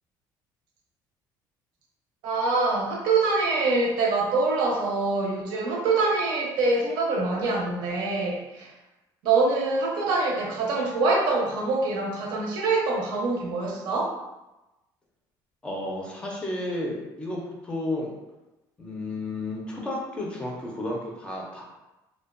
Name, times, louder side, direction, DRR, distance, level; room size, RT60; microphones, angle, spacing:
voice 1, 2.2-8.7 9.2-14.1, right 3 dB, 75° right, -2 dB, 0.6 m, -25 dB
voice 2, 15.6-18.1 18.8-21.6, left 1 dB, 10° left, -2 dB, 0.4 m, -32 dB
2.6 x 2.1 x 2.4 m, 1.0 s
cardioid pair, 170°, 8 cm